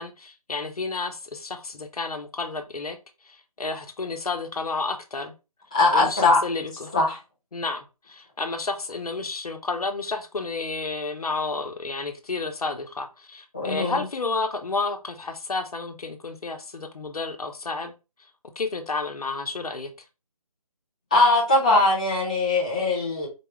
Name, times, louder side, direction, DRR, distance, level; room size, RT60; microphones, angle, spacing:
voice 1, 0.0-3.0 3.2-5.3 5.9-6.9 7.5-17.9 18.6-19.9, left 3 dB, 75° left, 0.9 m, -31 dB
voice 2, 5.7-6.4 6.9-7.2 13.5-14.0 21.1-23.3, left 2 dB, 10° left, 0.5 m, -20 dB
4.6 x 2.3 x 3.1 m
figure-of-eight pair, 165°, 19 cm